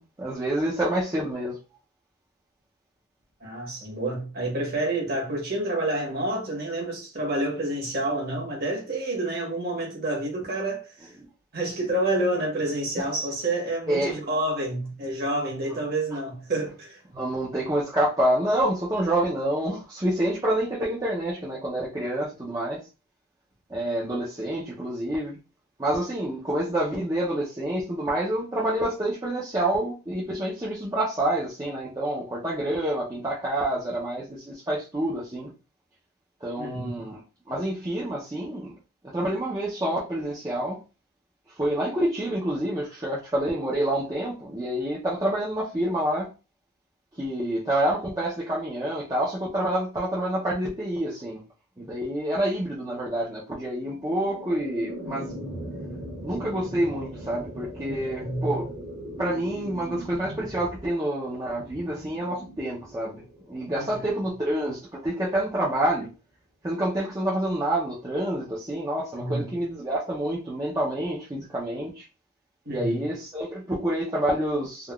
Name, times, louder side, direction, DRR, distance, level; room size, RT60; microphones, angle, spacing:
voice 1, 0.0-1.6 13.9-14.1 17.1-22.8 23.7-25.4 25.8-35.5 36.4-37.2 37.5-38.7 39.1-40.8 41.6-46.3 47.2-51.4 51.8-55.3 56.2-58.7 59.2-66.1 66.6-72.1 72.7-74.9, right 1 dB, 20° right, 0.5 m, -27 dB
voice 2, 3.4-11.1 11.5-17.0 36.6-36.9 57.8-58.6 63.8-64.0 69.1-69.5 72.6-73.1, right 1 dB, 50° right, 1.2 m, -29 dB
sound 1, 53.8-64.9, equal, 65° right, 1.1 m, -40 dB
3.6 x 2.2 x 2.3 m
head